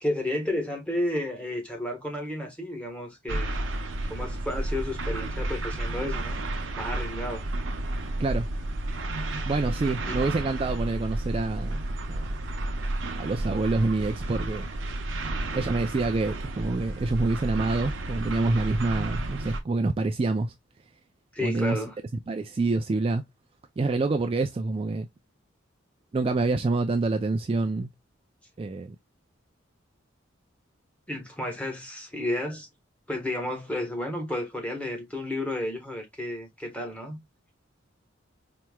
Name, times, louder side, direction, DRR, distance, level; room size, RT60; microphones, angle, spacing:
voice 1, 0.0-3.6 4.1-6.4 6.8-7.4 10.0-10.3 15.5-15.6 21.3-21.9 31.1-32.7 33.1-37.2, left 1 dB, 5° left, 1.3 m, -32 dB
sound 1, 3.3-19.6, right 1 dB, 70° right, 0.8 m, -31 dB
voice 2, 9.5-11.8 12.1-12.3 13.2-14.7 15.5-20.5 21.4-21.8 22.3-23.2 23.8-25.1 26.1-27.9 28.6-29.0, right 3 dB, 30° right, 0.3 m, -27 dB
4.4 x 2.9 x 2.2 m
head